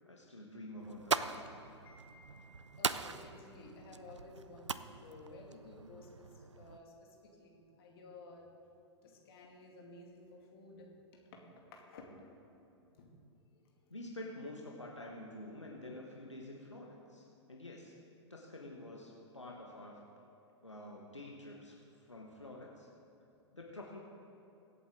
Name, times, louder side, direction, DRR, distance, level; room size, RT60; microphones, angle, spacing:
voice 1, 0.1-1.6 13.9-18.0 18.3-20.0 20.6-22.9 23.5-24.1, left 1 dB, 85° left, -1 dB, 1.4 m, -48 dB
sound 1, 0.8-6.8, right 5 dB, 80° right, 0.5 m, -41 dB
voice 2, 1.8-8.5 9.0-11.5 11.7-12.2 13.0-13.1 23.6-23.8, left 2 dB, 55° left, 0 dB, 2.4 m, -54 dB
23.5 x 8.4 x 3.8 m, 2.8 s
figure-of-eight pair, 100°, 15 cm